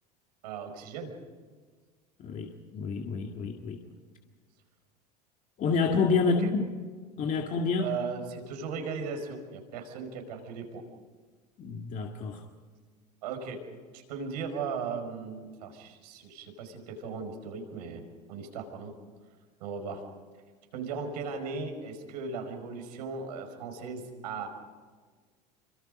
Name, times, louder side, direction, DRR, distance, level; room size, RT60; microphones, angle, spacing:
voice 1, 0.4-1.1 6.2-6.5 7.8-10.8 13.2-13.6 13.9-18.0 18.3-18.9 19.6-20.0 20.7-24.5, right 5 dB, 75° right, 5 dB, 5.1 m, -37 dB
voice 2, 2.2-3.8 5.6-6.5 7.2-7.9 11.6-12.4, left 4 dB, 40° left, 2 dB, 2.0 m, -28 dB
26.5 x 24.5 x 5.2 m, 1.5 s
hypercardioid pair, 95°, 20 cm